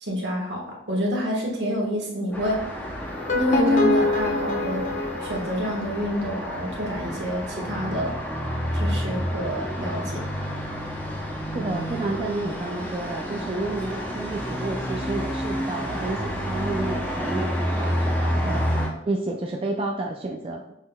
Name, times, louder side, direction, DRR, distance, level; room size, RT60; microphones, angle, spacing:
voice 1, 0.0-2.5 3.3-4.8 5.2-8.2 8.7-10.2, equal, 75° right, -1 dB, 1.3 m, -28 dB
Traffic noise roadway noise, 2.3-18.9, equal, 10° left, 0.7 m, -29 dB
sound 1, 3.1-6.2, left 2 dB, 40° left, 0.6 m, -25 dB
voice 2, 11.5-18.7 19.0-20.7, right 2 dB, 30° right, 1 dB, 0.3 m, -30 dB
6.2 x 3.8 x 2.2 m, 0.79 s
head